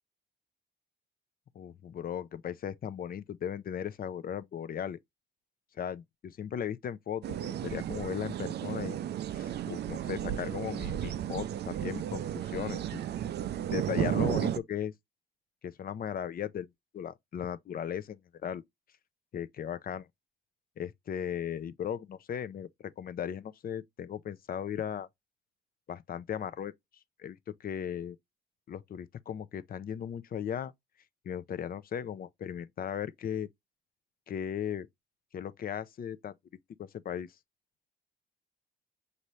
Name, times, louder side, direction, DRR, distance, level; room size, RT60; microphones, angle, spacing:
voice 1, 1.6-5.0 5.8-9.0 9.3-13.0 13.7-14.9 15.6-16.7 16.9-18.6 19.3-20.1 20.8-25.1 25.9-26.7 27.2-28.2 28.7-30.7 31.2-33.5 34.3-34.9 35.3-36.4 36.8-37.3, left 9 dB, 50° left, 0.5 m, -37 dB
sound 1, 7.2-14.6, right 11 dB, 55° right, 0.4 m, -33 dB
5.4 x 2.7 x 3.0 m
cardioid pair, 90°, 20 cm